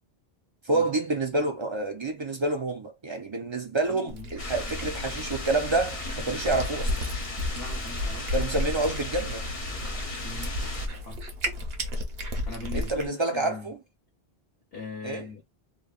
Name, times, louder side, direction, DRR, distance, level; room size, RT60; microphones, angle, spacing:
voice 1, 0.7-7.0 8.3-9.5 12.7-13.8 15.0-15.3, right 2 dB, 45° right, 0.4 m, -28 dB
voice 2, 3.9-4.3 7.5-8.3 10.2-10.6 11.0-11.2 12.5-13.7 14.7-15.6, left 3 dB, 70° left, 1.0 m, -40 dB
Cat, 4.1-13.1, left 1 dB, 70° right, 1.0 m, -33 dB
sound 1, 4.4-10.9, left 1 dB, 35° left, 0.8 m, -35 dB
3.0 x 2.1 x 2.3 m
omnidirectional pair, 1.1 m